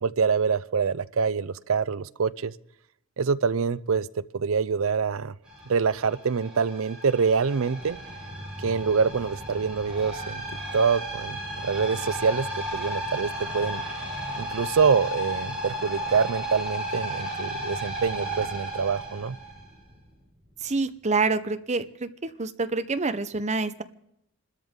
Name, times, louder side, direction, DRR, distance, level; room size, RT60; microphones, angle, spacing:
voice 1, 0.0-2.5 3.2-4.1 4.3-5.3 5.7-8.0 8.6-10.4 10.7-12.5 12.7-13.8 14.4-19.4, right 5 dB, 70° right, 18 dB, 0.5 m, -25 dB
sound 1, 5.5-20.0, right 1 dB, 5° right, 7.1 m, -34 dB
voice 2, 20.6-22.1 22.4-23.8, right 3 dB, 30° right, 10 dB, 0.8 m, -27 dB
27.0 x 13.0 x 3.7 m, 0.76 s
head